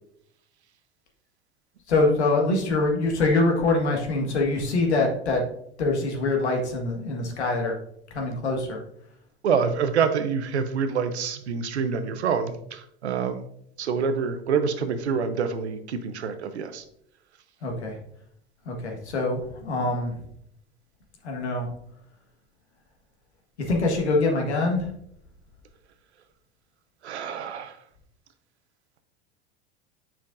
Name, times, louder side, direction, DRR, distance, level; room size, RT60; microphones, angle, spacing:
voice 1, 1.9-5.4 5.8-7.7 8.1-8.8 17.6-17.9 18.6-20.1 21.2-21.7 23.6-24.9, left 2 dB, 85° left, 1 dB, 1.6 m, -24 dB
voice 2, 9.4-13.4 13.8-16.8 27.0-27.7, right 6 dB, 85° right, 9 dB, 0.8 m, -26 dB
7.2 x 5.8 x 2.5 m, 0.71 s
hypercardioid pair, 85°, 33 cm